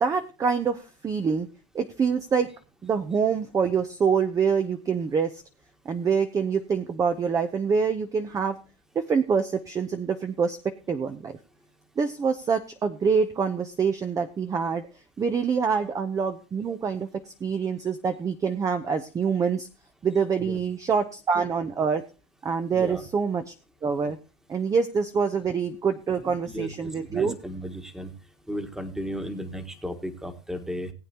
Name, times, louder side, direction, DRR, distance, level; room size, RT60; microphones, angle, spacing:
voice 1, 0.0-1.5 1.7-2.5 2.8-5.4 5.8-8.6 8.9-11.4 12.0-14.9 15.2-17.1 17.4-19.7 20.0-22.0 22.4-23.5 23.8-24.2 24.5-27.3, right 6 dB, 20° right, 8 dB, 0.7 m, -25 dB
voice 2, 22.7-23.1 26.2-28.1 28.5-30.9, equal, 5° right, 7 dB, 1.5 m, -35 dB
19.0 x 8.4 x 2.9 m, 0.32 s
hypercardioid pair, 115°, 16 cm